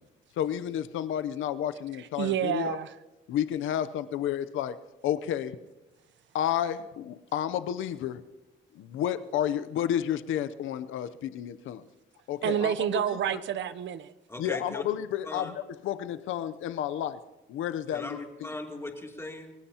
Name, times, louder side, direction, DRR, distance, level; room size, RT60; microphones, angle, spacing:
voice 1, 0.3-2.8 3.3-4.8 5.0-5.6 6.3-8.2 8.7-11.9 12.3-12.7 13.1-13.4 14.4-18.2, left 10 dB, 80° left, 0.7 m, -31 dB
voice 2, 2.2-2.9 12.4-14.1, right 10 dB, 70° right, 0.8 m, -28 dB
voice 3, 14.3-14.8 15.2-15.5 17.9-19.5, left 2 dB, 15° left, 2.9 m, -39 dB
26.5 x 18.0 x 2.9 m
cardioid pair, 90°, 20 cm